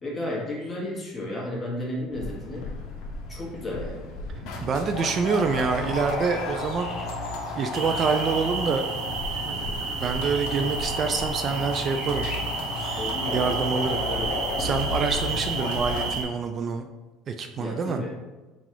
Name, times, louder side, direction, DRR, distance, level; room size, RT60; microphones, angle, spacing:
voice 1, 0.0-2.7 3.3-4.1 13.0-13.5 14.1-14.5 17.6-18.2, left 1 dB, 20° left, -3 dB, 1.2 m, -33 dB
sound 1, 2.1-16.1, left 2 dB, 75° left, 0.7 m, -33 dB
sound 2, 2.1-13.1, left 2 dB, 45° left, 1.2 m, -48 dB
voice 2, 4.6-6.9 7.5-8.9 9.5-12.3 13.3-14.0 14.6-16.9 17.3-18.0, right 5 dB, 40° right, 5 dB, 0.3 m, -26 dB
sound 3, 7.7-16.2, right 4 dB, 80° right, 0.9 m, -32 dB
3.9 x 2.4 x 4.5 m, 1.2 s
cardioid pair, 115°, 0 cm